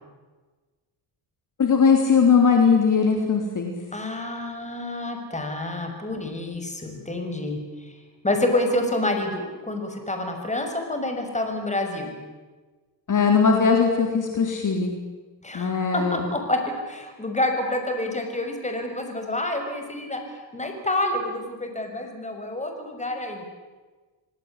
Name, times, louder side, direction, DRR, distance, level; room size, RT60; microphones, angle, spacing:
voice 1, 1.6-3.7 13.1-14.9 15.5-16.3, left 5 dB, 45° left, 3 dB, 3.8 m, -19 dB
voice 2, 3.9-7.9 8.2-12.2 15.4-20.2 20.5-23.4, left 1 dB, 15° left, 5 dB, 6.2 m, -28 dB
26.0 x 18.0 x 10.0 m, 1.3 s
cardioid pair, 85°, 44 cm